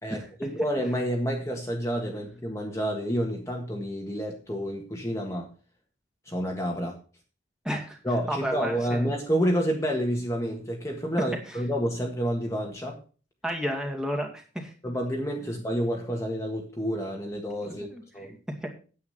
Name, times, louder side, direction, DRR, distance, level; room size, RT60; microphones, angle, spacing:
voice 1, 0.0-5.5 6.2-6.9 8.0-13.0 14.8-17.9 18.1-18.3, equal, 15° left, 0 dB, 1.6 m, -29 dB
voice 2, 7.6-8.0 8.3-9.1 11.5-11.6 13.4-14.7 17.7-18.0 18.3-18.7, equal, 5° right, 2 dB, 2.2 m, -32 dB
9.7 x 8.5 x 5.8 m, 0.37 s
head